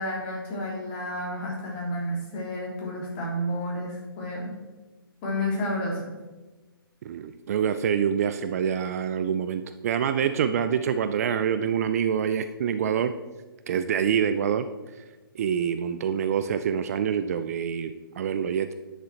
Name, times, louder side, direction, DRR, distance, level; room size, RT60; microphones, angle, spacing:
voice 1, 0.0-4.5 5.2-6.1, left 1 dB, 30° left, -3 dB, 3.2 m, -31 dB
voice 2, 7.0-13.2 13.7-14.7 15.3-18.7, right 8 dB, 40° right, 10 dB, 0.5 m, -26 dB
10.5 x 6.7 x 4.4 m, 1.2 s
hypercardioid pair, 150°, 12 cm